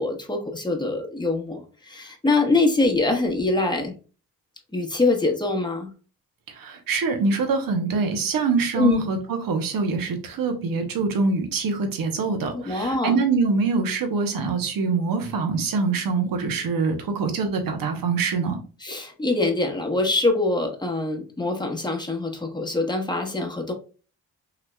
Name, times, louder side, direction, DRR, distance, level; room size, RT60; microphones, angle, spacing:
voice 1, 0.0-4.0 4.7-5.9 8.8-9.0 12.5-13.2 18.8-23.7, left 2 dB, 10° left, 1.0 m, -24 dB
voice 2, 6.5-18.6, right 4 dB, 70° right, 0.9 m, -24 dB
4.0 x 2.8 x 2.2 m
supercardioid pair, 45°, 36 cm